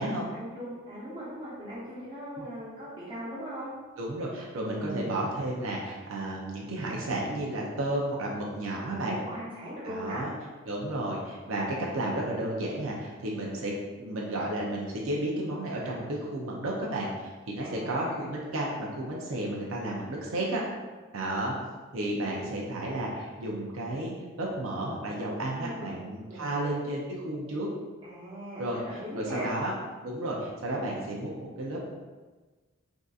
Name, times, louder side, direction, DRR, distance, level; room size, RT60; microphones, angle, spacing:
voice 1, 0.0-3.7 4.7-5.1 8.9-10.2 17.6-18.3 25.6-26.0 26.3-26.6 28.0-29.5, equal, 25° right, -10 dB, 1.1 m, -39 dB
voice 2, 4.0-9.2 9.8-10.3 10.7-20.6 21.1-21.6 21.9-27.7 28.6-28.8 29.1-29.7 30.0-31.3 31.6-31.8, right 1 dB, 90° right, -3 dB, 0.5 m, -32 dB
3.6 x 2.6 x 2.4 m, 1.3 s
head